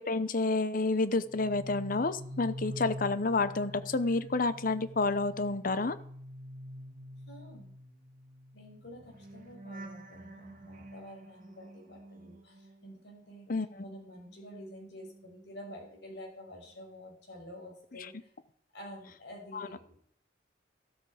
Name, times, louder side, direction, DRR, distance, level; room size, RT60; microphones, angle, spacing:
voice 1, 0.0-6.0 13.5-13.8 19.5-19.7, left 3 dB, 50° left, 13 dB, 0.8 m, -29 dB
sound 1, 1.2-13.5 13.8-15.9 16.2-16.5, equal, 45° right, 1.9 m, -47 dB
voice 2, 7.3-7.8 8.5-13.5 13.8-18.3 18.7-20.0, equal, 65° left, 0 dB, 5.7 m, -49 dB
13.5 x 13.0 x 4.9 m, 0.64 s
head